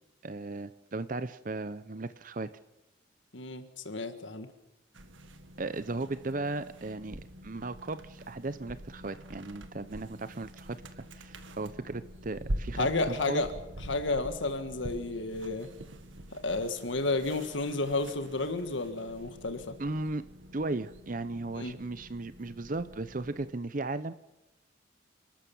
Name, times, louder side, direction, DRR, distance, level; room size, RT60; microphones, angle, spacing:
voice 1, 0.2-2.5 5.6-13.4 19.8-20.2 20.5-24.1, right 2 dB, 45° right, 13 dB, 0.7 m, -36 dB
voice 2, 3.3-4.5 12.8-13.5 13.8-15.7 16.3-19.7 21.6-21.8, left 3 dB, 80° left, 8 dB, 1.7 m, -31 dB
sound 1, 4.9-23.5, right 1 dB, 85° right, 1.8 m, -45 dB
30.0 x 13.0 x 7.2 m, 0.95 s
head